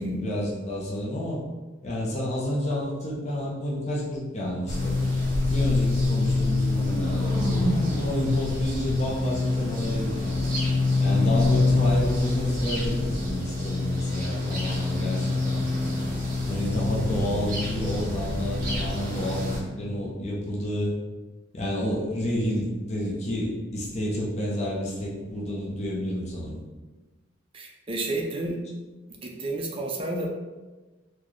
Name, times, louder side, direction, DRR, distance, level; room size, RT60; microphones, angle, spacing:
voice 1, 0.0-1.4 1.8-5.0 5.5-10.4 11.0-15.6 16.4-20.9 21.5-26.6, equal, 35° left, -4 dB, 0.6 m, -30 dB
sound 1, 4.7-19.6, left 3 dB, 45° right, 0.9 m, -26 dB
sound 2, 6.4-10.4, right 1 dB, ahead, 1.3 m, -32 dB
voice 2, 11.1-11.4 15.0-15.1 27.5-28.6 29.2-30.3, right 1 dB, 25° right, 1 dB, 0.4 m, -31 dB
3.8 x 2.2 x 3.1 m, 1.2 s
head